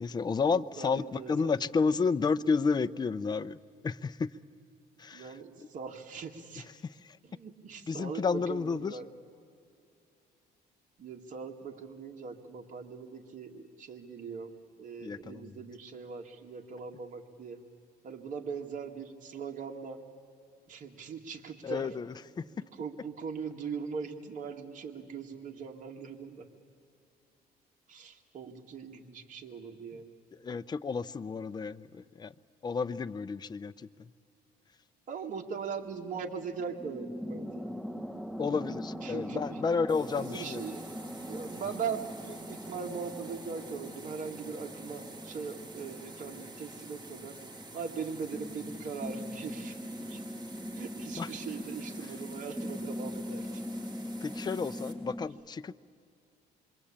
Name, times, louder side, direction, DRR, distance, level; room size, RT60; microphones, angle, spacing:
voice 1, 0.0-3.6 3.8-4.3 5.0-5.3 7.9-8.9 15.0-15.5 21.6-22.1 22.4-22.5 30.4-32.3 32.6-33.7 38.4-40.6 51.2-51.3 54.2-55.8, left 5 dB, 25° left, 12 dB, 0.6 m, -31 dB
voice 2, 0.5-1.6 5.1-6.7 7.2-9.1 11.0-14.5 14.8-17.6 18.0-20.0 20.7-21.9 22.4-26.5 27.9-30.1 35.1-37.8 39.0-39.6 40.1-47.4 47.7-49.8 50.1-50.2 50.8-53.5, right 6 dB, 50° right, 2 dB, 2.1 m, -40 dB
sound 1, 35.8-55.3, equal, ahead, 1.8 m, -41 dB
sound 2, 39.9-54.9, right 3 dB, 25° right, 3.3 m, -50 dB
27.0 x 23.0 x 8.7 m, 2.4 s
cardioid pair, 110°, 17 cm